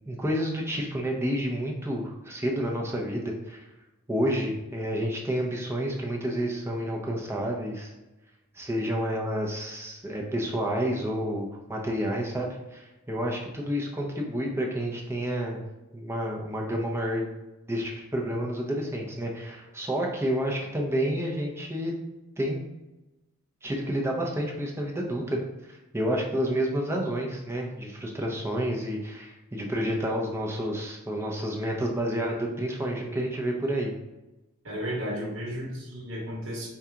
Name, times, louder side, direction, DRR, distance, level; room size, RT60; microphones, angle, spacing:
voice 1, 0.1-3.7 4.1-7.9 8.5-15.6 15.9-17.3 17.7-21.9 22.4-22.6 23.6-33.9, equal, 15° right, -1 dB, 0.6 m, -29 dB
voice 2, 34.6-36.7, equal, 80° right, -2 dB, 1.4 m, -33 dB
4.7 x 2.9 x 3.6 m, 1.0 s
head